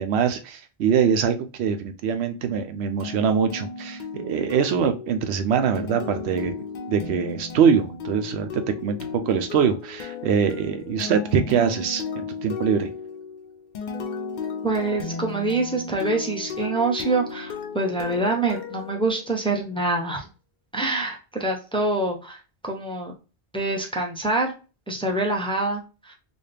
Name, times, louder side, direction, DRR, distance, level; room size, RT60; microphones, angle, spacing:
voice 1, 0.0-6.5 6.9-12.9, right 7 dB, 85° right, 8 dB, 0.9 m, -23 dB
sound 1, 3.0-19.7, left 4 dB, 55° left, 0.6 m, -35 dB
voice 2, 14.6-20.3 20.7-22.4 22.6-23.1 23.5-24.5 24.9-26.1, right 2 dB, 5° left, 1 dB, 0.6 m, -25 dB
4.1 x 2.2 x 3.4 m, 0.34 s
omnidirectional pair, 1.1 m